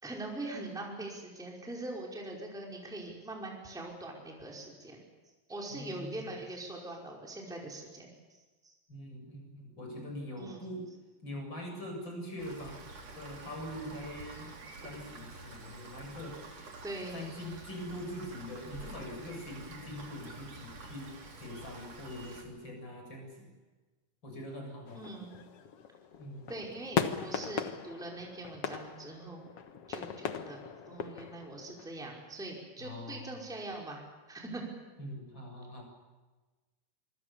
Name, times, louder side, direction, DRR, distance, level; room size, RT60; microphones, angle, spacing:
voice 1, 0.0-5.0 5.5-8.4 8.6-8.7 10.4-10.6 16.8-17.2 24.9-25.3 26.5-29.4 29.9-30.6 30.8-34.0 34.3-34.6, right 2 dB, ahead, -1 dB, 4.8 m, -42 dB
voice 2, 5.7-6.3 8.9-10.9 11.2-12.9 13.1-14.5 14.8-16.4 17.1-23.5 24.2-25.0 26.2-26.5 32.8-33.3 35.0-35.8, left 1 dB, 25° left, 2 dB, 8.2 m, -43 dB
Rain, 12.4-22.4, right 2 dB, 40° right, 4.4 m, -48 dB
sound 1, 24.9-31.9, left 7 dB, 65° left, 1.5 m, -38 dB
27.0 x 24.5 x 7.1 m, 1.2 s
omnidirectional pair, 4.7 m